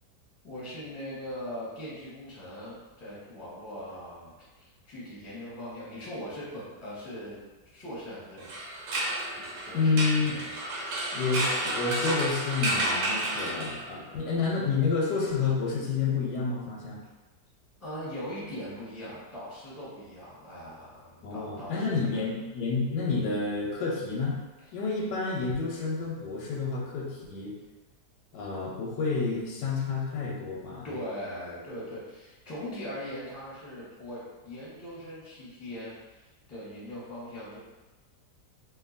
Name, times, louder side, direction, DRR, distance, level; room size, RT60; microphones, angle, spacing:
voice 1, 0.4-7.4 7.7-8.5 9.4-10.6 13.9-14.0 17.8-22.2 30.8-37.6, equal, 10° left, -10 dB, 0.9 m, -40 dB
sound 1, 8.4-14.1, right 1 dB, 75° right, 1.1 m, -31 dB
voice 2, 9.7-10.4 11.1-17.0 21.2-24.4 24.7-27.6 28.3-30.9, left 4 dB, 85° left, -2 dB, 1.2 m, -29 dB
2.8 x 2.5 x 2.5 m, 1.2 s
omnidirectional pair, 1.8 m